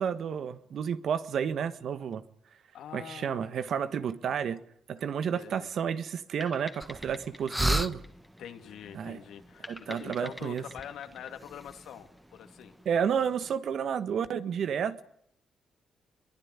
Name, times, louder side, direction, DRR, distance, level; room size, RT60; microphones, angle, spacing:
voice 1, 0.0-2.2 2.9-4.6 4.9-8.0 8.9-9.2 9.7-10.6 12.8-15.0, right 7 dB, 65° right, 1.5 m, -31 dB
voice 2, 2.7-3.5 5.3-5.7 8.4-12.7, left 9 dB, 90° left, 2.9 m, -45 dB
sound 1, 6.4-8.9 9.6-12.2, left 2 dB, 15° left, 2.3 m, -48 dB
sound 2, 6.8-13.6, right 1 dB, 5° right, 1.1 m, -37 dB
23.0 x 22.0 x 9.8 m
cardioid pair, 125°, 0 cm